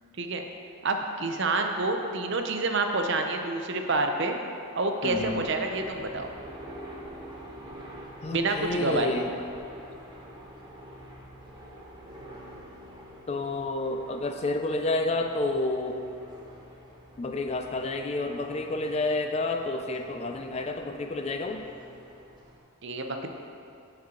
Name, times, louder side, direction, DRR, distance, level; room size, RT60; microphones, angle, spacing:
voice 1, 0.8-4.4 4.7-6.3 8.3-9.1 22.8-23.3, right 2 dB, 55° right, 4 dB, 0.6 m, -28 dB
voice 2, 5.0-5.4 8.2-9.3 13.3-16.0 17.2-21.7, left 2 dB, 30° left, 5 dB, 0.3 m, -30 dB
sound 1, 5.0-22.6, right 1 dB, 20° right, 0.9 m, -46 dB
13.0 x 4.5 x 3.7 m, 2.6 s
head